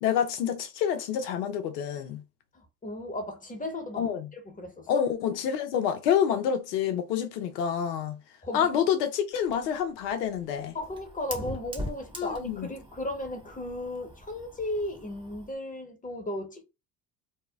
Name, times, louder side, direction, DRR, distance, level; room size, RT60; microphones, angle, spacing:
voice 1, 0.0-2.2 4.0-4.3 4.9-8.2 8.5-10.8 12.2-12.7, left 8 dB, 85° left, 0.7 m, -28 dB
voice 2, 2.5-4.9 8.4-8.7 10.7-16.6, left 1 dB, 15° left, 1.0 m, -35 dB
Fire, 9.3-15.5, equal, 10° right, 0.8 m, -42 dB
2.8 x 2.0 x 2.2 m
hypercardioid pair, 65°, 46 cm